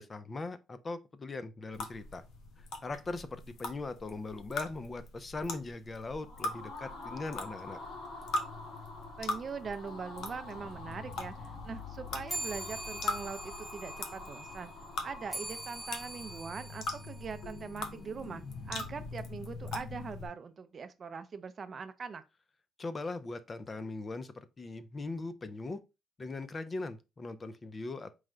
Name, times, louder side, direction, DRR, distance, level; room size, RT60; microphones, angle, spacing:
voice 1, 0.0-2.2 2.6-7.8 22.8-25.8 26.2-28.1, left 3 dB, 35° left, 0.4 m, -40 dB
sound 1, 1.7-20.3, left 3 dB, 75° left, 0.7 m, -42 dB
sound 2, 6.1-16.9, left 3 dB, 55° left, 2.3 m, -48 dB
voice 2, 9.2-14.7 15.0-22.2, right 5 dB, 45° right, 0.5 m, -42 dB
sound 3, 12.3-18.1, right 1 dB, 5° left, 0.9 m, -44 dB
4.7 x 2.1 x 3.7 m
cardioid pair, 90°, 0 cm